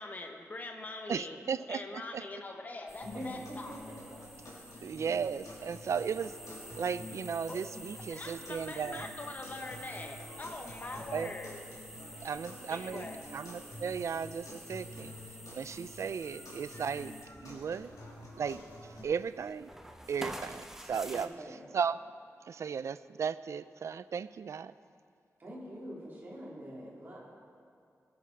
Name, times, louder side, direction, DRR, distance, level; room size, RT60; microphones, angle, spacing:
voice 1, 0.0-1.4 1.7-3.8 7.5-7.6 7.9-11.6 12.7-13.2, left 2 dB, 30° left, 4 dB, 0.8 m, -43 dB
voice 2, 1.1-2.2 4.8-6.3 6.8-9.1 11.1-11.3 12.2-13.1 13.3-15.1 15.5-17.1 17.4-17.9 18.4-18.6 19.0-19.7 20.1-21.3 21.7-22.0 22.5-24.7, right 6 dB, 60° right, 15 dB, 0.3 m, -35 dB
sound 1, 2.9-21.3, right 1 dB, 5° right, 0.6 m, -49 dB
sound 2, 3.0-19.0, left 1 dB, 80° left, 2.8 m, -49 dB
voice 3, 3.0-4.2 21.0-21.6 25.4-27.2, equal, 35° right, -5 dB, 2.8 m, -44 dB
19.0 x 7.6 x 4.5 m, 2.4 s
wide cardioid pair, 170°, 6 cm